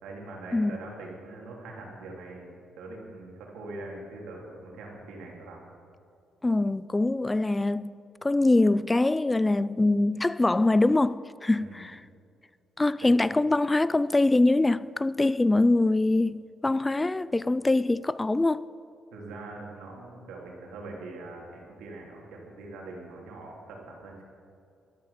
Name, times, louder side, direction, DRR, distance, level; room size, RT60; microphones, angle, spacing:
voice 1, 0.0-2.5 2.8-5.7 11.6-11.9 13.0-13.1 19.1-24.2, right 2 dB, 90° right, 3.4 m, -42 dB
voice 2, 6.4-12.0 12.8-18.6, left 2 dB, 15° left, 0.3 m, -24 dB
12.5 x 12.5 x 5.8 m
cardioid pair, 90°, 0 cm